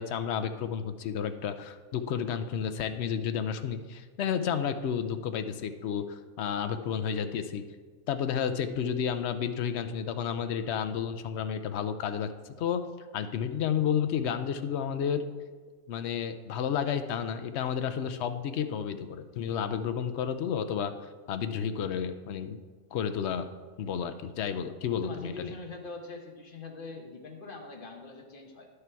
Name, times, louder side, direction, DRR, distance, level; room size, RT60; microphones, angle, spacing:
voice 1, 0.0-7.6 8.1-12.3 12.6-12.8 13.1-15.2 15.9-20.9 21.3-22.6 22.9-23.5 23.8-25.5, left 8 dB, 65° left, 9 dB, 0.8 m, -31 dB
voice 2, 25.0-28.7, left 3 dB, 45° left, 2 dB, 1.3 m, -43 dB
10.5 x 6.7 x 4.6 m, 1.5 s
omnidirectional pair, 1.4 m